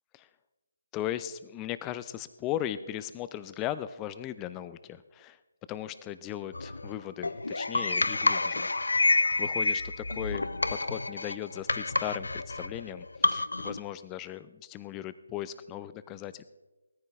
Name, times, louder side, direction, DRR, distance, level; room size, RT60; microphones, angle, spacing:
voice 1, 0.9-5.4 5.7-8.7 9.0-16.4, left 12 dB, 15° left, 14 dB, 0.5 m, -37 dB
sound 1, 6.5-13.8, left 3 dB, 75° left, 0.6 m, -29 dB
17.5 x 14.0 x 3.5 m, 1.1 s
figure-of-eight pair, 150°, 0 cm